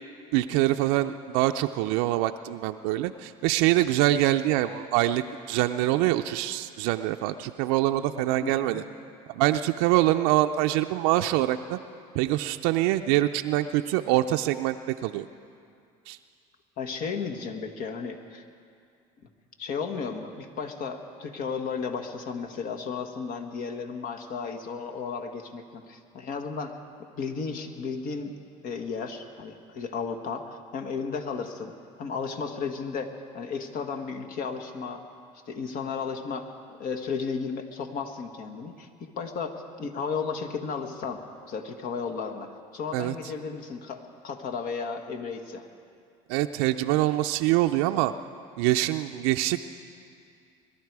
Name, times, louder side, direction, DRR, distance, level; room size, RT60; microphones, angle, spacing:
voice 1, 0.3-5.2 5.5-8.8 9.3-11.8 12.1-14.8 15.0-15.3 16.1-16.2 42.9-43.1 46.3-48.1 48.6-49.6, right 15 dB, 80° right, 7 dB, 0.5 m, -24 dB
voice 2, 8.4-8.8 16.8-18.4 19.6-26.8 27.1-28.3 28.6-31.7 32.0-35.0 35.5-45.7, left 5 dB, 60° left, 4 dB, 1.5 m, -34 dB
22.0 x 12.0 x 4.7 m, 2.4 s
supercardioid pair, 85°, 17 cm